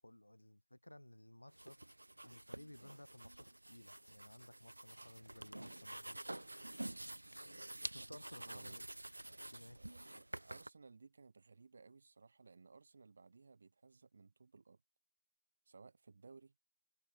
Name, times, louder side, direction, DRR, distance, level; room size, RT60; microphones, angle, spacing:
voice 1, 0.0-1.8 2.2-6.2 7.9-8.9 9.5-9.8, left 1 dB, 75° left, 0.9 m, -57 dB
sound 1, 1.5-10.7, right 1 dB, 65° right, 0.5 m, -49 dB
voice 2, 8.1-8.8 9.8-14.8 15.7-16.5, right 4 dB, 35° right, 1.9 m, -61 dB
figure-of-eight pair, 160°, 0 cm